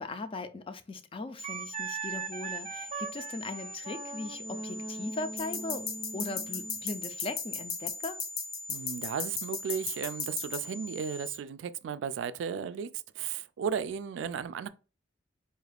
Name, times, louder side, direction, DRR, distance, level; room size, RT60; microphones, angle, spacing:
voice 1, 0.0-5.9 6.1-8.2, left 2 dB, 30° left, 0.4 m, -39 dB
sound 1, 1.4-11.4, left 1 dB, 85° left, 1.2 m, -44 dB
Wind instrument woodwind instrument, 1.4-6.8, right 5 dB, 35° right, 0.6 m, -40 dB
sound 2, 5.4-10.6, left 6 dB, 55° left, 0.7 m, -35 dB
voice 2, 8.7-12.9 13.2-14.7, right 7 dB, 80° right, 0.3 m, -35 dB
4.4 x 2.4 x 3.3 m
head